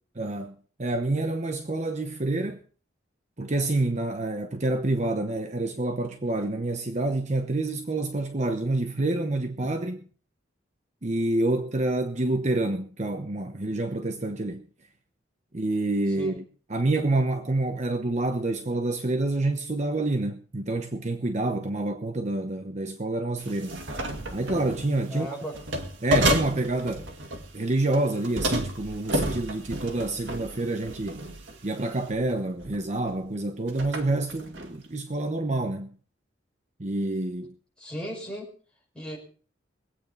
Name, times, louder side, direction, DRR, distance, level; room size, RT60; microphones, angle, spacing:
voice 1, 0.2-2.6 3.4-10.0 11.0-14.6 15.5-16.4 16.7-23.8 24.3-25.3 26.0-27.1 27.5-31.2 31.6-35.9 36.8-37.5, right 2 dB, 40° right, 1.0 m, -27 dB
sound 1, 23.4-24.9 25.5-27.6 27.9-31.6 32.1-32.3 32.6-33.1 33.7-34.7, equal, 80° right, 2.0 m, -30 dB
voice 2, 25.1-25.6 37.8-38.5 38.9-39.2, equal, 5° left, 5.6 m, -36 dB
23.0 x 8.9 x 4.1 m
head